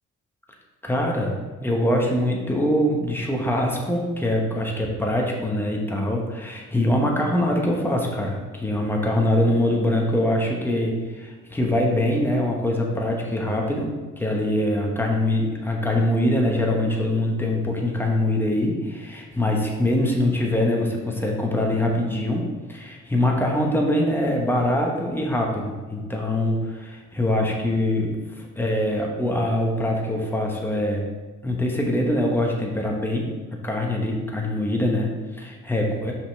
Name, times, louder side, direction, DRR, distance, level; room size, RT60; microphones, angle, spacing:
voice 1, 0.8-13.9 14.2-28.2 28.6-31.0 31.4-36.1, left 1 dB, 5° left, 0 dB, 1.2 m, -23 dB
5.6 x 5.5 x 3.4 m, 1.3 s
cardioid pair, 90°, 30 cm